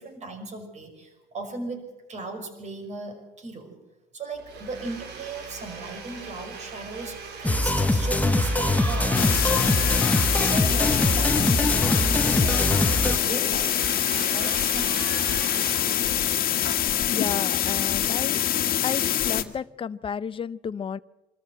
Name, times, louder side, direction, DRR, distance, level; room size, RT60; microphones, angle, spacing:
voice 1, 0.0-1.8 2.1-3.8 4.1-13.9 14.3-14.9, right 2 dB, 45° right, 6 dB, 5.5 m, -37 dB
Domestic sounds home sounds, 4.4-17.0, right 5 dB, 80° right, 3.5 m, -38 dB
sound 1, 7.4-13.2, left 2 dB, 10° left, 1.2 m, -23 dB
sound 2, 9.1-19.4, left 11 dB, 60° left, 1.6 m, -25 dB
voice 2, 17.1-18.4 18.8-21.0, left 7 dB, 30° left, 14 dB, 0.7 m, -32 dB
25.5 x 14.0 x 8.0 m, 1.0 s
cardioid pair, 110°, 17 cm